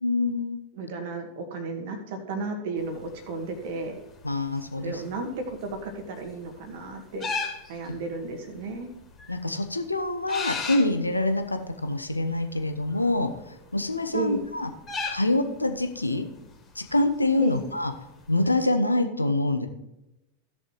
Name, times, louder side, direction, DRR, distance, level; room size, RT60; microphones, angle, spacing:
voice 1, 0.0-0.6 4.2-5.0 9.3-14.7 15.1-16.3 16.7-17.9 18.3-19.7, left 2 dB, 85° left, 8 dB, 0.9 m, -26 dB
voice 2, 0.7-4.0 4.8-7.3 7.7-8.9 14.1-14.4 17.4-17.6, right 3 dB, 50° right, 5 dB, 1.9 m, -33 dB
sound 1, 2.8-18.5, left 4 dB, 25° left, 2.8 m, -40 dB
16.0 x 6.7 x 3.1 m, 0.92 s
figure-of-eight pair, 90°, 0 cm